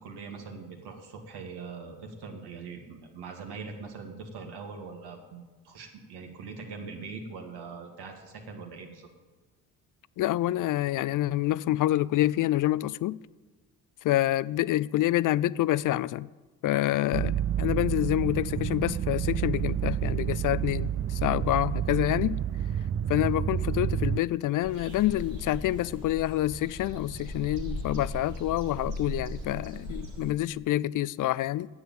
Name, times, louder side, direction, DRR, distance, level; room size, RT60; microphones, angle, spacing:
voice 1, 0.0-9.1, right 4 dB, 70° right, 2.3 m, -42 dB
voice 2, 10.2-13.2 14.0-16.3 16.6-22.4 23.1-31.7, left 14 dB, 50° left, 0.4 m, -27 dB
sound 1, 17.1-24.2, right 10 dB, 35° right, 0.5 m, -29 dB
sound 2, 24.6-30.3, equal, 85° right, 2.1 m, -38 dB
9.5 x 7.9 x 9.0 m
hypercardioid pair, 55°, 41 cm